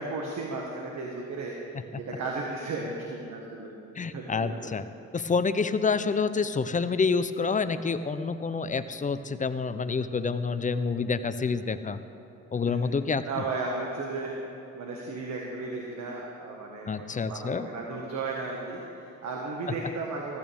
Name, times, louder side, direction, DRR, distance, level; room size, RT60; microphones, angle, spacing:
voice 1, 0.0-3.7 4.1-4.7 12.7-12.8 13.3-14.3 14.7-20.4, right 3 dB, 65° right, -1 dB, 1.7 m, -35 dB
voice 2, 4.0-4.8 5.1-12.0 12.5-13.2 16.9-17.7, left 4 dB, 25° left, 12 dB, 0.6 m, -28 dB
15.0 x 14.5 x 3.5 m, 2.7 s
cardioid pair, 90°, 30 cm